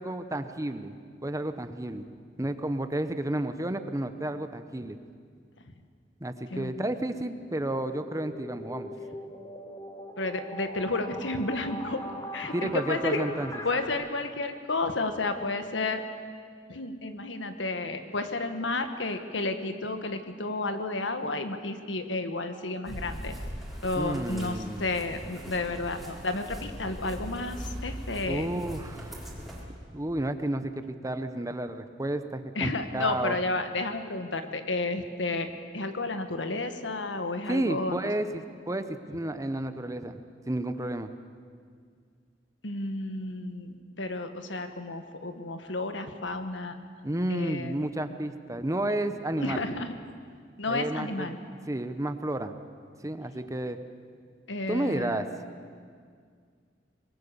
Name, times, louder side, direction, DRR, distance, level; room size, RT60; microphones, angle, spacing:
voice 1, 0.0-2.1 2.4-5.0 6.2-8.9 12.5-13.5 24.0-24.9 28.3-29.1 29.9-33.4 37.5-40.2 40.5-41.1 47.0-49.6 50.7-51.3 51.7-52.5 53.0-53.8 54.7-55.3, right 1 dB, 20° right, 9 dB, 0.9 m, -31 dB
voice 2, 6.5-6.9 10.2-12.0 12.3-13.2 13.6-16.0 16.7-23.3 23.8-28.5 32.5-35.5 35.7-38.0 42.6-46.8 47.3-47.8 49.4-49.9 50.6-51.4 54.5-55.3, left 2 dB, 90° left, 8 dB, 1.6 m, -31 dB
sound 1, 7.3-13.9, equal, 20° left, 1.7 m, -41 dB
sound 2, 22.9-29.6, equal, ahead, 4.3 m, -40 dB
25.0 x 20.5 x 7.0 m, 2.1 s
head